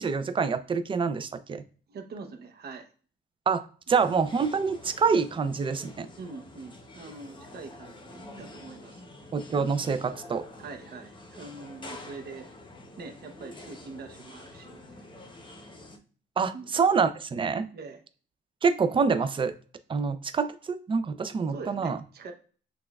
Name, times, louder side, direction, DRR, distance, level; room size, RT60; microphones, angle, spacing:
voice 1, 0.0-1.6 3.5-6.1 9.3-10.4 16.4-17.7 18.6-19.5 19.9-22.0, right 5 dB, 25° right, 11 dB, 0.4 m, -26 dB
voice 2, 1.9-2.9 6.2-9.1 10.6-12.5 13.0-15.0 16.5-16.8 17.7-18.0 21.5-22.3, right 4 dB, 55° right, 5 dB, 0.8 m, -43 dB
sound 1, 3.9-16.0, left 2 dB, 25° left, 0.8 m, -47 dB
5.9 x 2.3 x 2.3 m, 0.41 s
cardioid pair, 90°, 20 cm